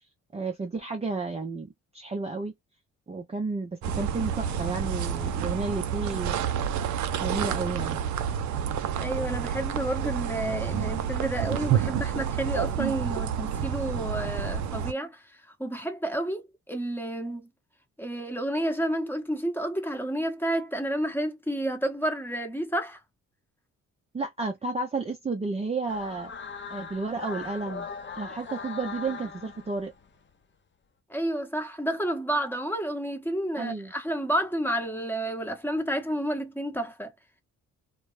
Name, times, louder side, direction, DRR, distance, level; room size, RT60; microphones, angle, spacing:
voice 1, 0.3-2.5 3.1-6.6 7.2-8.0 24.1-26.3 26.7-27.9 28.2-29.9 33.6-33.9, right 3 dB, 20° right, 0.6 m, -32 dB
sound 1, 3.8-14.9, right 8 dB, 70° right, 0.6 m, -29 dB
voice 2, 8.9-16.4 16.7-17.5 18.0-23.0 31.1-37.1, right 1 dB, 5° left, 0.9 m, -30 dB
sound 2, 25.9-30.2, left 5 dB, 40° left, 0.7 m, -40 dB
2.3 x 2.1 x 3.1 m
cardioid pair, 90°, 30 cm